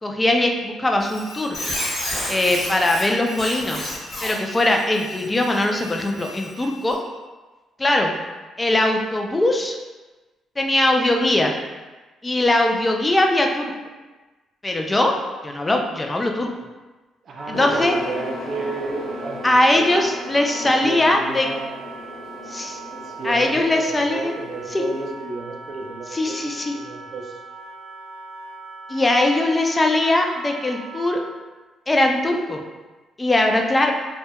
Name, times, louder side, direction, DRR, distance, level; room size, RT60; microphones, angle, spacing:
voice 1, 0.0-1.6 2.3-3.9 4.2-7.0 7.8-8.1 8.6-9.8 10.6-11.5 12.2-13.7 14.6-15.1 15.4-16.5 17.5-17.9 19.4-21.5 22.5-22.8 23.2-24.3 26.1-26.7 28.9-31.2 31.9-32.6 33.2-33.9, left 1 dB, 20° left, 2 dB, 0.3 m, -20 dB
Squeak, 1.0-7.0, left 1 dB, 45° left, 1.0 m, -32 dB
voice 2, 17.2-19.9 20.6-21.8 22.9-27.4, right 3 dB, 55° right, 1 dB, 0.4 m, -32 dB
Wind instrument woodwind instrument, 17.3-31.4, right 3 dB, 40° right, 0.8 m, -39 dB
sound 1, 17.5-25.1, left 2 dB, 90° left, 0.5 m, -36 dB
2.2 x 2.2 x 2.7 m, 1.2 s
cardioid pair, 90°, 0 cm